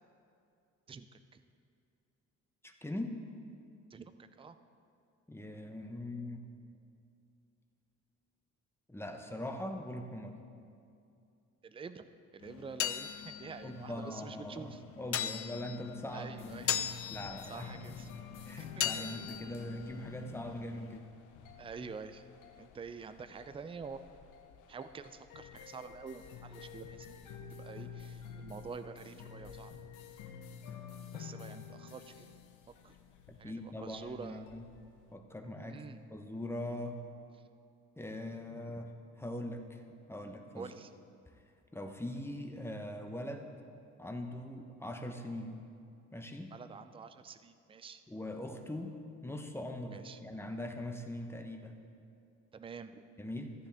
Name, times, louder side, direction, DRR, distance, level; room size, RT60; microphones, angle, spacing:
voice 1, 0.9-1.4 3.9-4.6 11.6-12.1 12.3-14.8 16.1-16.8 17.4-18.1 18.6-19.3 21.6-22.3 22.6-24.0 24.7-27.2 27.6-29.7 31.1-32.3 32.8-33.0 33.4-34.4 35.6-36.0 40.6-41.0 46.5-48.0 49.9-50.2 52.5-53.0, right 5 dB, 20° right, 10 dB, 0.4 m, -47 dB
voice 2, 2.6-3.2 5.3-6.4 8.9-10.3 13.6-18.0 18.5-21.1 33.4-34.6 35.1-35.8 36.1-37.0 38.0-38.9 39.2-39.8 40.1-40.7 41.7-43.5 44.0-45.6 46.1-46.5 48.1-48.9 49.2-51.7 53.2-53.5, left 1 dB, 10° left, 4 dB, 0.9 m, -41 dB
sound 1, 12.4-21.0, left 10 dB, 50° left, 0.5 m, -40 dB
sound 2, 16.4-35.1, left 7 dB, 85° left, 0.7 m, -50 dB
14.5 x 9.6 x 3.5 m, 2.5 s
cardioid pair, 90°, 30 cm